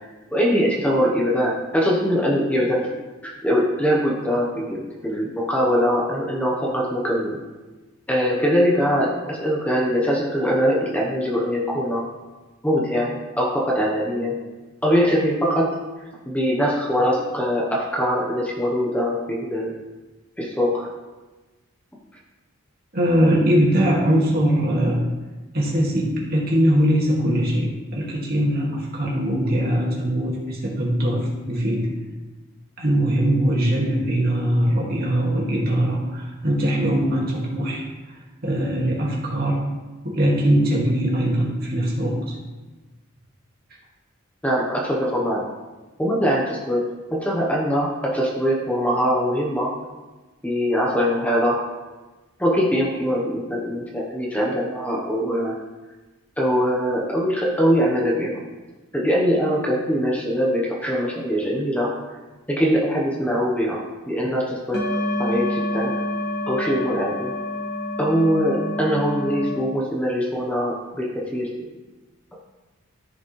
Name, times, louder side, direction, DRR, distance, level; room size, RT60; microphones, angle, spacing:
voice 1, 0.0-2.9 3.2-7.4 8.1-12.0 12.6-14.4 14.8-15.8 16.3-19.7 20.4-20.9 44.4-45.4 46.0-49.7 50.4-51.6 52.4-55.6 56.4-58.5 58.9-61.9 62.5-64.9 65.2-65.9 66.5-67.3 68.0-71.5, equal, 5° left, -3 dB, 0.9 m, -22 dB
voice 2, 22.9-25.0 25.5-31.9 32.8-37.8 38.4-39.6 40.0-42.4, equal, 45° right, -3 dB, 2.0 m, -21 dB
sound 1, 64.7-69.5, left 1 dB, 50° left, 1.6 m, -27 dB
14.0 x 5.1 x 3.2 m, 1.2 s
head